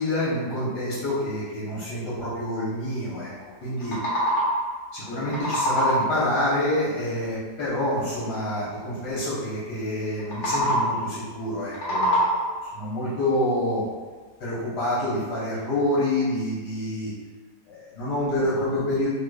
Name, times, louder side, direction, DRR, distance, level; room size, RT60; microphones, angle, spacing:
voice 1, 0.0-3.3 3.6-4.0 4.9-13.8 14.4-17.1 17.7-19.1, left 1 dB, 90° left, -10 dB, 1.7 m, -27 dB
sound 1, 3.6-4.7 5.1-6.2 10.2-11.1 11.5-12.6, equal, 55° left, 0.9 m, -24 dB
3.8 x 2.8 x 2.3 m, 1.4 s
omnidirectional pair, 1.8 m